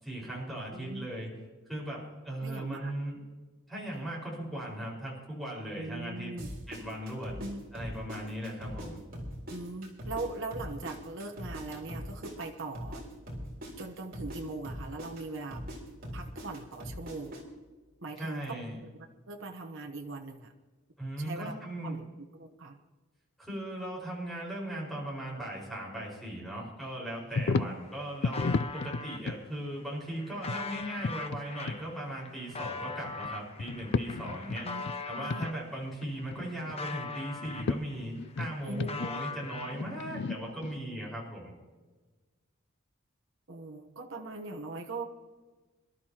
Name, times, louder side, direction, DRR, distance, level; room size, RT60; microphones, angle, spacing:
voice 1, 0.0-1.3 1.7-3.2 3.7-6.3 6.7-7.4 7.7-9.0 18.2-18.8 21.0-22.0 23.4-34.7 35.0-41.5, right 1 dB, ahead, -4 dB, 5.0 m, -38 dB
voice 2, 0.7-1.1 2.4-2.9 5.8-6.5 7.4-7.6 9.5-13.0 13.8-15.6 16.1-17.3 18.0-20.5 21.2-21.5 21.8-22.1 22.3-22.8 27.5-27.7 34.6-34.8 35.2-35.5 38.6-38.9 43.5-45.0, right 2 dB, 60° right, 3 dB, 1.0 m, -40 dB
sound 1, 6.4-8.9 9.1-13.0 13.3-17.4, equal, 40° right, 3.8 m, -41 dB
sound 2, 27.3-27.8 28.2-29.4 30.5-31.4 31.7-31.8 32.5-33.3 33.6-35.0 35.3-35.5 35.8-36.8 37.4-37.8 38.1-40.8, left 4 dB, 55° left, 0.4 m, -33 dB
sound 3, 27.3-27.4 27.6-29.2 29.8-35.6 36.1-38.0 38.3-40.1, left 4 dB, 30° left, 0.8 m, -41 dB
26.5 x 12.5 x 2.9 m, 1.3 s
head